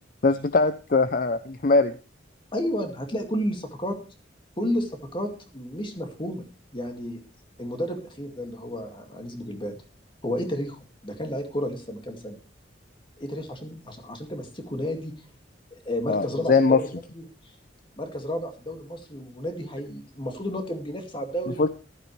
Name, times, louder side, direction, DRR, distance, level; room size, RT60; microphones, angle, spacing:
voice 1, 0.2-1.9 16.1-16.8 21.6-21.7, left 3 dB, 50° left, 12 dB, 0.6 m, -21 dB
voice 2, 2.5-4.0 4.6-6.4 6.7-7.2 7.6-9.8 10.2-12.4 13.2-15.1 15.7-16.9 17.1-17.2 18.0-21.6, equal, 25° left, 5 dB, 2.2 m, -31 dB
14.5 x 12.5 x 3.3 m, 0.34 s
head